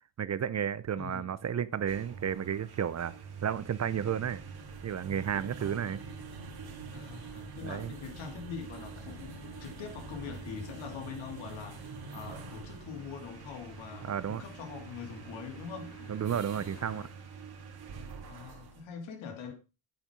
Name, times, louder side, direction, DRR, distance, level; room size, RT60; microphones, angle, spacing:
voice 1, 0.2-3.1 3.4-4.4 4.8-6.0 7.6-7.9 14.0-14.4 16.1-17.1, right 8 dB, 35° right, 0.7 m, -32 dB
voice 2, 1.0-1.4 6.9-15.9 18.3-19.5, left 6 dB, 75° left, 3.0 m, -43 dB
sound 1, 1.7-18.9, right 5 dB, 55° right, 2.7 m, -45 dB
sound 2, 8.9-17.1, left 6 dB, 40° left, 1.6 m, -55 dB
9.1 x 8.2 x 5.1 m
supercardioid pair, 80°, 45 cm